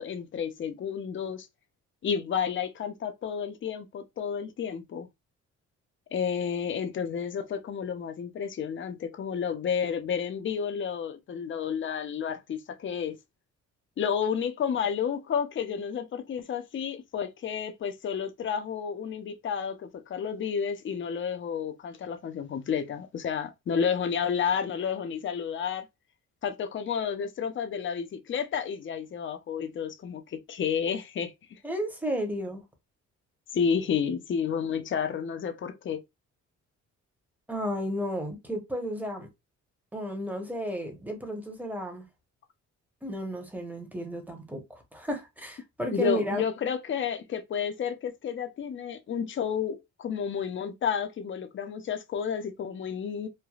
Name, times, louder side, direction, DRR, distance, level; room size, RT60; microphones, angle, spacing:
voice 1, 0.0-1.5 2.0-5.1 6.1-13.2 14.0-25.9 26.4-31.3 33.5-36.0 45.9-53.3, left 7 dB, 40° left, 0.6 m, -31 dB
voice 2, 31.6-32.6 37.5-39.3 39.9-42.1 43.0-46.4, equal, 5° right, 0.9 m, -33 dB
3.2 x 2.1 x 2.3 m
cardioid pair, 90°, 30 cm